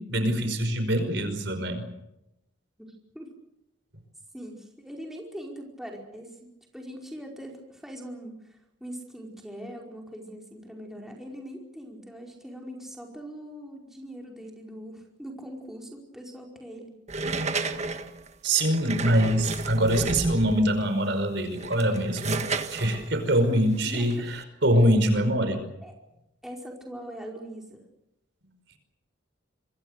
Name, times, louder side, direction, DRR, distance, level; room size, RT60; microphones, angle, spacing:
voice 1, 0.0-1.8 18.4-22.4 22.7-25.6, right 1 dB, 60° right, 8 dB, 5.2 m, -24 dB
voice 2, 2.8-3.3 4.3-16.9 23.8-24.2 25.8-25.9 26.4-27.8, equal, ahead, 0 dB, 5.0 m, -41 dB
sound 1, 17.1-20.8 21.5-24.4, right 3 dB, 35° right, 1.6 m, -32 dB
26.5 x 23.5 x 6.7 m, 0.85 s
head